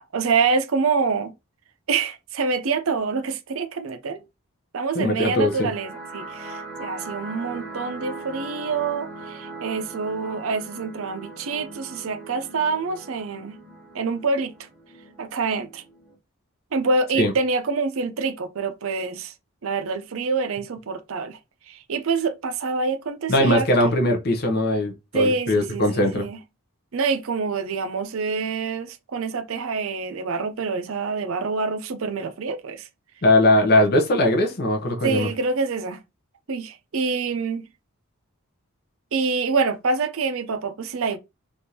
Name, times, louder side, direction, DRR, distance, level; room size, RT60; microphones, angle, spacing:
voice 1, 0.0-1.3 1.9-4.2 4.7-13.6 13.9-14.5 15.2-15.8 16.7-19.3 19.6-21.4 21.7-23.7 25.1-26.4 26.9-32.9 35.0-36.0 36.5-37.7 39.1-41.2, right 4 dB, 65° right, 0.5 m, -26 dB
voice 2, 4.9-5.7 17.2-17.3 23.3-26.2 33.2-35.3, left 1 dB, 45° left, 0.7 m, -20 dB
sound 1, 5.2-16.1, right 3 dB, 5° left, 0.8 m, -39 dB
3.4 x 2.5 x 2.8 m
head